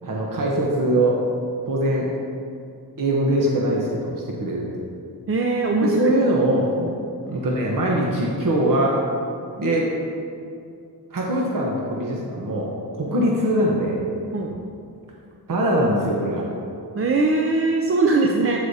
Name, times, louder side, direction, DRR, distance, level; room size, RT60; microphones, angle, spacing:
voice 1, 0.0-1.2 1.6-2.1 3.0-4.6 5.8-6.7 7.3-9.0 9.6-9.9 11.1-12.7 13.0-14.0 15.5-16.5, right 1 dB, 50° right, -3 dB, 0.9 m, -22 dB
voice 2, 5.3-6.1 6.8-7.0 14.3-14.6 17.0-18.7, right 3 dB, 35° right, 1 dB, 0.4 m, -21 dB
8.2 x 7.9 x 2.7 m, 2.4 s
wide cardioid pair, 130°, 42 cm